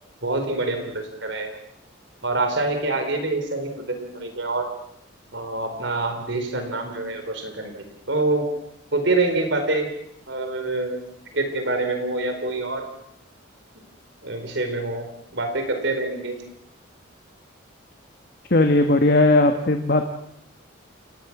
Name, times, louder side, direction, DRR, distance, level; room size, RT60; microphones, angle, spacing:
voice 1, 0.2-1.6 2.2-4.7 5.3-7.7 8.1-8.5 8.9-9.9 10.3-11.0 11.3-12.9 13.7-13.9 14.2-15.1 15.3-16.3, right 2 dB, 60° right, 6 dB, 4.3 m, -26 dB
voice 2, 18.5-20.1, left 2 dB, 50° left, 5 dB, 1.5 m, -17 dB
29.5 x 20.0 x 6.1 m, 0.72 s
head